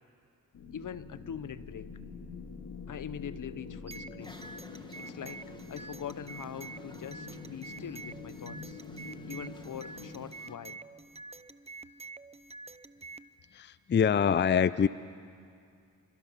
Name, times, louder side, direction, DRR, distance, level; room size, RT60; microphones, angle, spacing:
sound 1, 0.5-10.2, left 4 dB, 80° left, 2.2 m, -45 dB
voice 1, 0.7-1.9 2.9-4.4 5.0-5.4 5.7-8.8 9.3-10.8, left 8 dB, 60° left, 15 dB, 0.9 m, -43 dB
sound 2, 3.9-13.3, right 3 dB, 20° right, 0.7 m, -48 dB
sound 3, 4.2-10.6, left 1 dB, 15° left, 2.1 m, -56 dB
voice 2, 13.5-14.9, left 7 dB, 30° left, 16 dB, 0.5 m, -25 dB
27.5 x 27.0 x 5.8 m, 2.4 s
cardioid pair, 55°, 35 cm